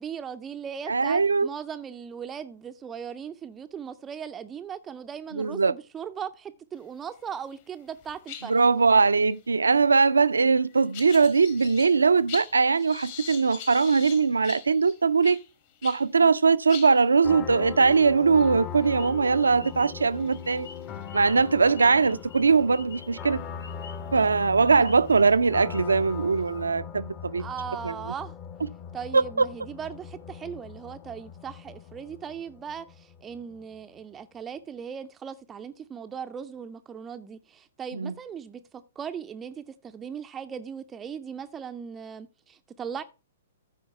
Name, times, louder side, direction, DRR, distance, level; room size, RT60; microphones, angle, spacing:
voice 1, 0.0-8.5 27.4-28.4 28.9-43.0, right 7 dB, 15° right, 0.5 m, -38 dB
voice 2, 0.9-1.5 5.3-5.7 8.4-15.4 15.8-20.7 21.1-23.4 24.1-27.4 27.8-27.9 29.1-29.5 37.9-38.1, right 4 dB, 70° right, 0.4 m, -21 dB
sound 1, 7.2-7.6 7.9-16.1 16.4-16.5 16.7-22.5 23.1-23.3 24.2-24.3 24.9-26.6, left 9 dB, 45° left, 1.6 m, -45 dB
sound 2, 17.2-33.7, left 7 dB, 25° left, 0.8 m, -40 dB
sound 3, 19.0-25.4 25.7-25.8, left 4 dB, 65° left, 1.0 m, -48 dB
14.0 x 4.6 x 4.3 m
figure-of-eight pair, 115°, 0 cm